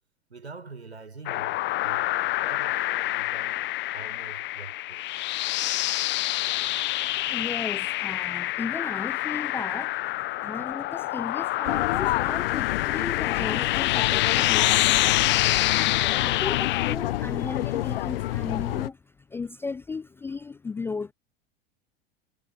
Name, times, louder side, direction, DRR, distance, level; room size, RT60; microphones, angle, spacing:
voice 1, 0.3-2.1 2.4-5.0, right 4 dB, 85° right, 4.4 m, -45 dB
sound 1, 1.3-17.0, left 17 dB, 35° left, 0.9 m, -27 dB
voice 2, 6.9-15.3 15.8-19.0 19.3-21.1, left 4 dB, 10° left, 0.3 m, -36 dB
sound 2, 11.7-18.9, left 15 dB, 60° left, 1.0 m, -29 dB
figure-of-eight pair, 85°, 32 cm